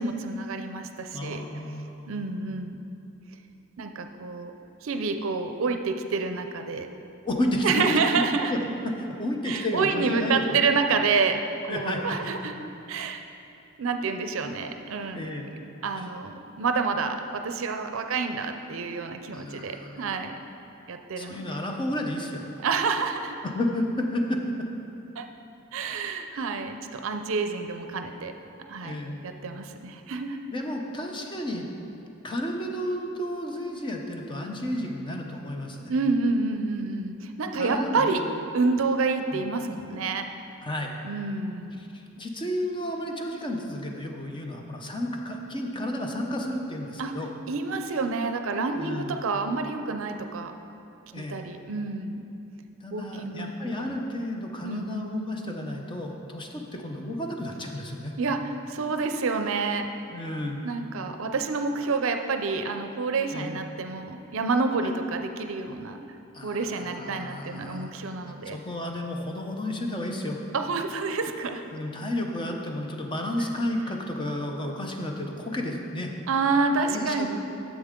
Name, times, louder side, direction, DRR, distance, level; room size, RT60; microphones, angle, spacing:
voice 1, 0.0-1.4 2.1-2.8 3.8-4.5 4.8-6.9 7.6-8.5 9.5-11.4 11.7-12.5 12.9-13.2 13.8-15.3 15.8-20.4 20.9-21.5 22.6-23.4 25.2-25.3 25.7-28.3 28.7-29.0 29.2-30.4 35.9-38.2 38.5-40.3 41.0-41.8 42.2-42.3 47.0-47.1 47.5-50.5 51.1-52.2 52.9-54.0 54.6-55.1 58.2-59.9 60.6-66.0 66.4-68.6 70.5-71.6 76.3-77.3, right 4 dB, 65° right, 6 dB, 0.5 m, -28 dB
voice 2, 1.1-2.3 7.2-7.8 8.4-8.6 8.8-10.6 10.9-11.0 11.7-12.5 15.1-15.5 16.0-16.1 19.3-20.0 21.2-22.5 23.4-24.7 28.8-29.2 30.5-31.7 32.2-35.9 37.6-38.2 39.3-39.4 40.6-40.9 41.9-47.3 48.7-49.2 51.1-51.4 52.8-58.1 60.1-60.6 63.3-63.6 64.8-64.9 66.3-67.9 68.2-70.4 71.7-76.1 76.9-77.3, left 1 dB, 25° left, 1 dB, 0.7 m, -32 dB
9.9 x 7.3 x 3.7 m, 2.8 s
head